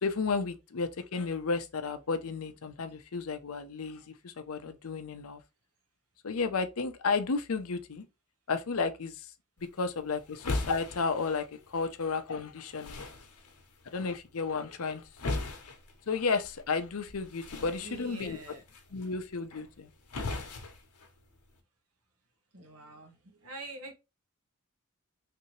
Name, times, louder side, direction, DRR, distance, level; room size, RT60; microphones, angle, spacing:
voice 1, 0.0-5.4 6.2-8.0 8.5-9.3 9.6-13.0 13.9-15.4 16.1-18.4 18.9-19.9, left 4 dB, 65° left, 0.6 m, -33 dB
sound 1, 9.6-21.6, left 2 dB, 90° left, 0.9 m, -41 dB
voice 2, 17.5-18.6 22.5-23.2 23.4-23.9, right 2 dB, 75° right, 1.1 m, -45 dB
3.4 x 2.8 x 3.1 m
head